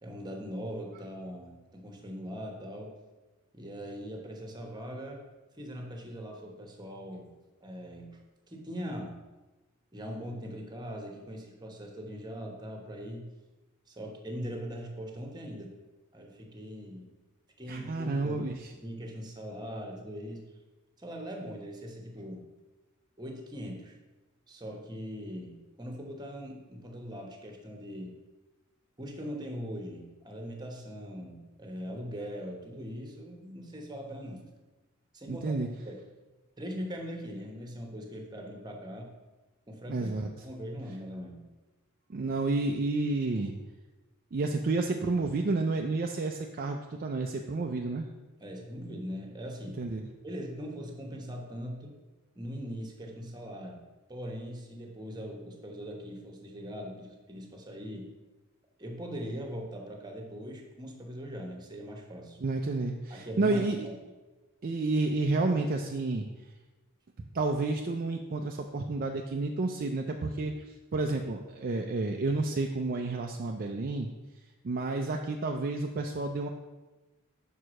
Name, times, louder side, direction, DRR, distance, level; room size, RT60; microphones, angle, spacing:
voice 1, 0.0-2.9 3.5-5.2 5.6-7.3 7.6-8.2 8.5-9.2 9.9-13.3 13.9-15.7 16.1-17.1 17.6-18.6 18.8-20.4 21.0-22.4 23.2-24.0 24.5-28.1 29.0-34.5 35.1-35.5 35.9-36.0 36.6-39.1 39.7-40.1 40.4-41.4 48.4-49.8 50.2-52.0 52.4-53.8 54.1-58.1 58.8-62.4 63.1-64.0, equal, 20° right, 2 dB, 1.1 m, -41 dB
voice 2, 17.7-18.6 35.3-35.7 39.9-40.3 42.1-43.5 44.3-48.1 49.8-50.0 62.4-63.9 64.6-66.3 67.3-70.5 70.9-74.1 74.6-76.5, right 3 dB, 40° right, 3 dB, 0.4 m, -30 dB
5.5 x 4.7 x 6.2 m, 1.1 s
head